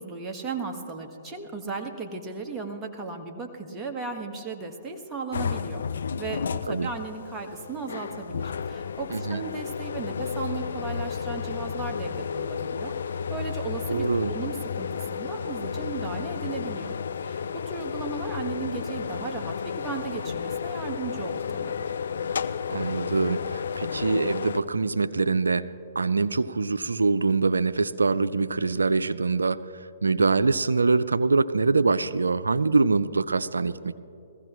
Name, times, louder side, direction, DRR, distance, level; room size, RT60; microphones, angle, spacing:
voice 1, 0.0-5.8 6.2-17.0 17.2-21.7, right 4 dB, 20° right, 2 dB, 1.5 m, -36 dB
sound 1, 5.3-24.6, left 6 dB, 70° left, 0.5 m, -32 dB
voice 2, 9.1-9.4 13.9-14.3 22.7-25.6 26.0-29.6 30.0-34.0, right 4 dB, 90° right, 14 dB, 0.4 m, -24 dB
21.0 x 15.5 x 3.1 m, 2.7 s
hypercardioid pair, 125°, 0 cm